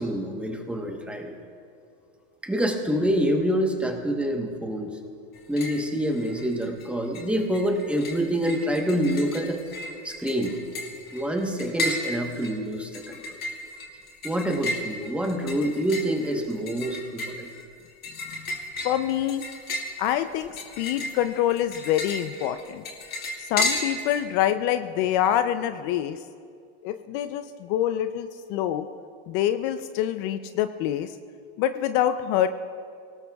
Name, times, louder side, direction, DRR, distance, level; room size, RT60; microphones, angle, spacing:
voice 1, 0.0-1.4 2.4-4.9 5.5-9.6 10.0-10.6 11.1-13.4 14.2-17.5, equal, 5° right, 2 dB, 1.1 m, -26 dB
sound 1, 5.3-5.9 6.2-6.9 7.1-24.2, left 1 dB, 30° left, 2.1 m, -34 dB
voice 2, 18.8-19.4 20.0-22.8 23.4-26.2 26.8-28.9 29.3-31.2 31.6-32.5, left 11 dB, 50° left, 10 dB, 0.5 m, -26 dB
24.0 x 18.0 x 2.3 m, 2.3 s
supercardioid pair, 150°, 33 cm